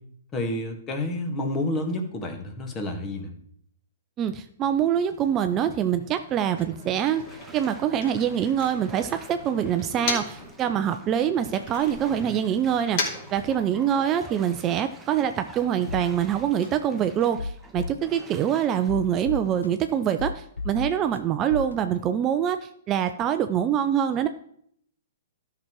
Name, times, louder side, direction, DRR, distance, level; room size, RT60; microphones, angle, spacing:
voice 1, 0.3-3.3, left 1 dB, 25° left, 4 dB, 2.0 m, -29 dB
voice 2, 4.2-7.3 7.5-24.3, right 9 dB, 30° right, 9 dB, 0.5 m, -25 dB
Bathtub (filling or washing), 4.9-5.3 5.7-5.8 7.0-20.1 20.6-20.7, right 2 dB, 10° right, 1.2 m, -48 dB
Motor vehicle (road), 6.1-10.5 10.9-14.1, left 4 dB, 50° left, 2.9 m, -37 dB
sound 1, 15.9-16.1 16.6-16.7 17.2-18.2 18.7-19.9 20.2-21.2 21.5-21.7, left 3 dB, 80° left, 0.7 m, -33 dB
13.0 x 6.1 x 4.6 m, 0.67 s
figure-of-eight pair, 115°, 0 cm